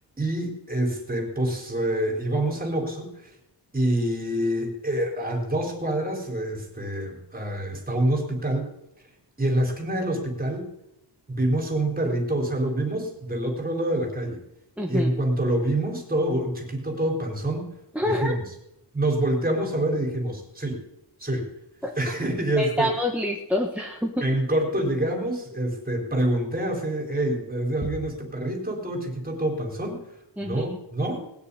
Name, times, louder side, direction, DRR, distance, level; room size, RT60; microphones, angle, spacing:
voice 1, 0.2-3.3 3.7-8.7 9.4-10.7 11.3-14.4 14.9-17.7 18.0-18.4 18.9-20.8 21.2-21.5 22.0-22.9 24.2-30.0 30.4-31.2, right 1 dB, 20° right, 1 dB, 4.1 m, -26 dB
voice 2, 14.8-15.1 17.9-18.3 21.8-21.9 22.6-24.3 30.4-30.8, left 1 dB, 5° right, 2 dB, 1.5 m, -27 dB
20.0 x 7.1 x 9.8 m, 0.84 s
wide cardioid pair, 165°, 41 cm